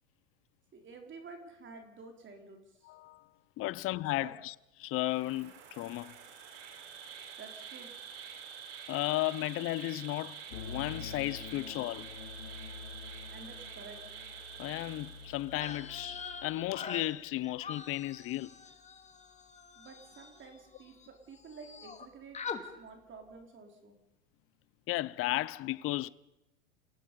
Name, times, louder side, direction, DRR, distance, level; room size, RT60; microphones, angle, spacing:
voice 1, 0.7-2.9 3.6-3.7 4.2-4.3 7.4-7.9 13.3-14.1 19.8-22.4 22.8-24.0, right 4 dB, 30° right, 3.9 m, -50 dB
voice 2, 2.9-3.2 3.6-4.5 4.8-6.2 8.9-12.1 14.6-18.5 24.9-26.1, left 17 dB, 30° left, 0.6 m, -34 dB
Insect, 5.0-15.8, right 7 dB, 55° right, 5.1 m, -48 dB
sound 1, 10.5-16.8, left 5 dB, 70° left, 4.1 m, -47 dB
sound 2, 15.5-21.1 21.3-22.1 22.3-22.6, left 5 dB, 15° left, 2.2 m, -44 dB
28.5 x 17.5 x 5.3 m
hypercardioid pair, 105°, 41 cm